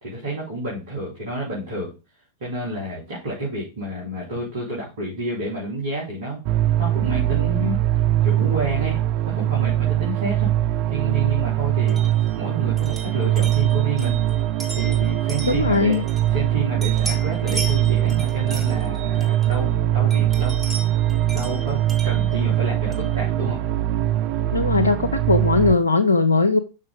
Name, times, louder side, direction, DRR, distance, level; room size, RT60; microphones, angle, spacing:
voice 1, 0.0-1.9 2.4-6.4 6.8-7.8 8.2-10.5 10.9-12.0 12.4-14.2 14.8-16.0 16.3-20.6 21.3-23.6, right 2 dB, 60° right, -4 dB, 3.5 m, -29 dB
sound 1, 6.4-25.7, right 12 dB, 45° right, 0.6 m, -22 dB
sound 2, 11.9-16.5 16.8-19.7 20.1-23.2, right 3 dB, 10° right, 2.1 m, -37 dB
voice 2, 15.4-16.0 24.5-26.6, left 4 dB, 75° left, 6 dB, 0.6 m, -19 dB
6.5 x 6.0 x 5.0 m, 0.31 s
figure-of-eight pair, 90°, 0 cm